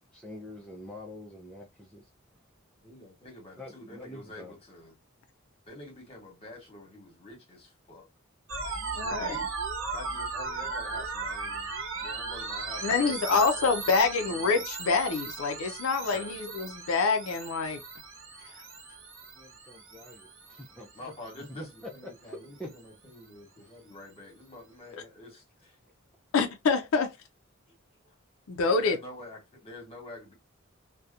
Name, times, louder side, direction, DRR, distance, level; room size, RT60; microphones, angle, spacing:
voice 1, 0.1-2.0 3.6-4.5 19.3-20.9 21.6-21.7 22.2-22.7, left 1 dB, 5° left, 0.4 m, -45 dB
voice 2, 2.8-5.0 5.7-8.0 8.6-9.6 9.9-11.7 12.0-14.6 16.0-16.3 20.9-25.8 28.0-28.1 28.8-30.3, left 1 dB, 30° left, 1.1 m, -47 dB
sound 1, 8.5-22.0, right 4 dB, 65° right, 0.8 m, -37 dB
voice 3, 8.9-9.3 12.8-17.8 24.9-25.0 26.3-27.1 28.5-29.0, left 4 dB, 75° left, 0.4 m, -26 dB
2.7 x 2.1 x 2.3 m
head